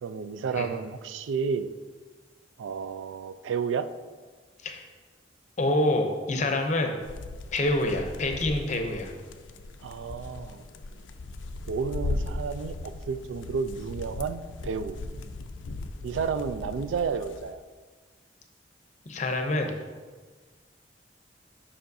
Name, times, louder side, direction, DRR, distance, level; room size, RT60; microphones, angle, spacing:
voice 1, 0.0-1.7 2.6-3.9 9.8-10.6 11.7-15.0 16.0-17.6, right 5 dB, 85° right, 12 dB, 0.3 m, -31 dB
voice 2, 5.6-7.0 7.5-9.1 19.1-19.7, left 1 dB, 40° left, 4 dB, 0.6 m, -26 dB
sound 1, 7.0-17.5, left 2 dB, 85° left, 0.4 m, -38 dB
7.1 x 5.6 x 2.6 m, 1.4 s
head